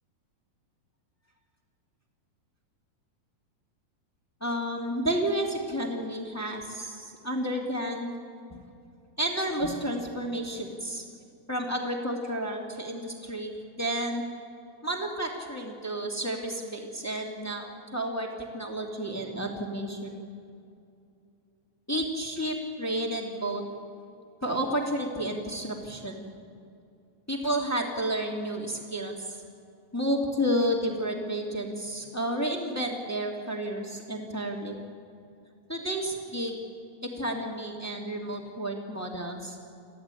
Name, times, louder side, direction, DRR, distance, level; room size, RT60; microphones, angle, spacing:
voice 1, 4.4-8.1 9.2-11.0 11.5-14.2 14.8-20.2 21.9-23.6 24.4-26.3 27.3-29.4 29.9-34.7 35.7-36.6 37.0-39.6, right 1 dB, 5° left, 0 dB, 1.4 m, -31 dB
27.5 x 14.5 x 9.1 m, 2.6 s
omnidirectional pair, 4.3 m